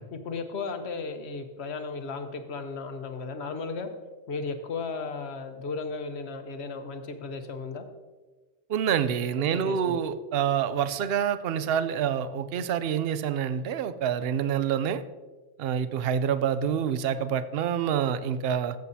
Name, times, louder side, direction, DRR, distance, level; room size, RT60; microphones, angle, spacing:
voice 1, 0.1-3.9 4.3-7.8 9.3-10.0, left 4 dB, 75° left, 7 dB, 1.2 m, -35 dB
voice 2, 8.7-15.0 15.6-18.8, right 8 dB, 65° right, 13 dB, 0.8 m, -27 dB
14.5 x 7.9 x 2.7 m, 1.3 s
omnidirectional pair, 1.1 m